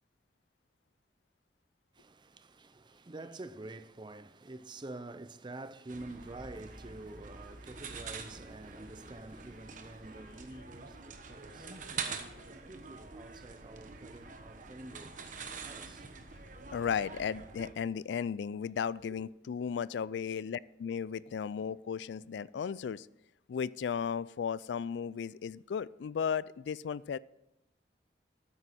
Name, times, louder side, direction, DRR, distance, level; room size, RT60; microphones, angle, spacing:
voice 1, 1.9-16.1, right 2 dB, 25° right, 0.5 m, -48 dB
sound 1, 5.9-17.7, right 5 dB, 45° right, 1.1 m, -45 dB
voice 2, 11.5-12.4 16.7-23.1 23.5-27.2, left 7 dB, 80° left, 0.3 m, -35 dB
13.0 x 9.3 x 4.2 m
head